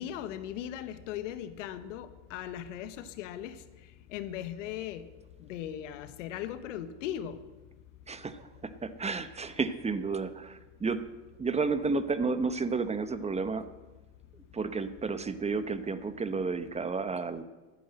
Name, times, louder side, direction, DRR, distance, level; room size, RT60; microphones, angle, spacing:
voice 1, 0.0-3.6 4.1-5.0 5.4-7.4, left 10 dB, 85° left, 12 dB, 1.2 m, -38 dB
voice 2, 8.1-11.1 11.4-13.7 14.5-17.4, right 4 dB, 15° right, 12 dB, 0.9 m, -32 dB
12.5 x 9.3 x 7.9 m, 1.2 s
supercardioid pair, 100°, 36 cm